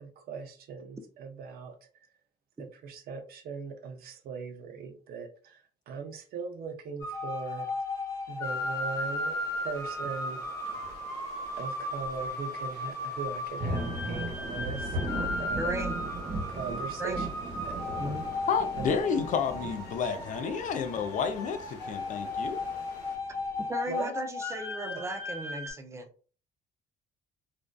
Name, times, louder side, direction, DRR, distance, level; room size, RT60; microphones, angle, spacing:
voice 1, 0.0-1.7 2.8-5.6 5.9-7.7 8.3-9.3 9.6-10.4 11.6-15.0 15.4-15.7 16.5-17.3 17.6-17.8 18.8-19.0 23.9-24.1 24.8-24.9, right 5 dB, 65° right, 0.5 m, -39 dB
sound 1, 7.0-25.7, left 2 dB, 20° left, 0.9 m, -36 dB
sound 2, 8.4-23.2, left 3 dB, 75° left, 0.7 m, -50 dB
sound 3, 10.7-11.0 11.6-11.7 12.1-12.2 13.3-23.6, right 1 dB, 35° right, 1.1 m, -38 dB
voice 2, 15.6-16.0 17.0-17.3 18.0-18.3 23.6-26.1, right 1 dB, 15° right, 0.4 m, -36 dB
voice 3, 18.5-22.6, left 6 dB, 50° left, 0.4 m, -30 dB
2.5 x 2.2 x 2.2 m
cardioid pair, 110°, 17 cm